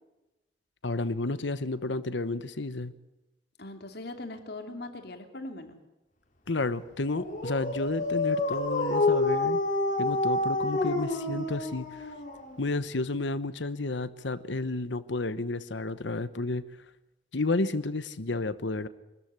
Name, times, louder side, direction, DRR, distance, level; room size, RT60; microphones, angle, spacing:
voice 1, 0.8-2.9 6.5-9.6 10.0-12.1 12.6-16.6 17.3-18.9, left 2 dB, 80° left, 13 dB, 1.0 m, -31 dB
voice 2, 3.6-5.8, left 2 dB, 60° left, 6 dB, 2.9 m, -40 dB
Dog, 7.1-12.8, left 2 dB, 45° left, 3.8 m, -28 dB
25.0 x 13.5 x 9.7 m, 1.0 s
head